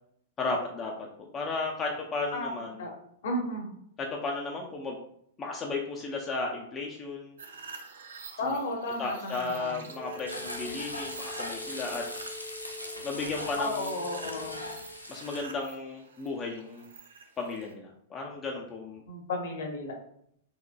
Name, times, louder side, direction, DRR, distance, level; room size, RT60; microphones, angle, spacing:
voice 1, 0.4-2.7 4.0-5.0 5.4-7.4 8.4-8.6 9.0-12.0 13.0-13.9 15.1-16.9 17.4-19.0, left 3 dB, 20° left, -1 dB, 0.4 m, -34 dB
voice 2, 3.2-3.8 8.4-9.9 13.6-14.6 19.1-19.9, left 1 dB, 55° left, 1 dB, 0.8 m, -33 dB
sound 1, 7.4-17.7, right 5 dB, 60° right, 0.4 m, -49 dB
sound 2, 9.9-14.9, left 3 dB, 45° right, 1.1 m, -45 dB
Frying (food), 10.3-15.4, left 1 dB, 85° left, 0.5 m, -40 dB
3.7 x 2.9 x 2.2 m, 0.70 s
figure-of-eight pair, 100°, 0 cm